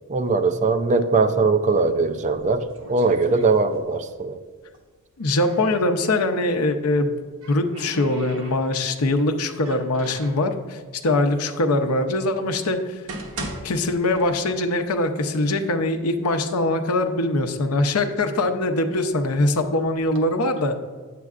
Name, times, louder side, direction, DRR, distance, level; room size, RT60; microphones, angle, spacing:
voice 1, 0.1-4.4, right 4 dB, 35° right, 9 dB, 0.4 m, -21 dB
sound 1, 2.2-4.1 4.4-5.8 6.9-9.0 9.5-10.5 11.3-11.4 12.0-12.1 12.7-14.7 15.1-15.2 15.9-16.0 16.3-17.0 17.5-19.2 19.8-20.2, right 2 dB, 70° right, 1.1 m, -39 dB
voice 2, 5.2-7.2 7.5-13.0 13.6-20.8, left 2 dB, 80° left, 6 dB, 0.7 m, -22 dB
9.3 x 7.6 x 2.4 m, 1.5 s
head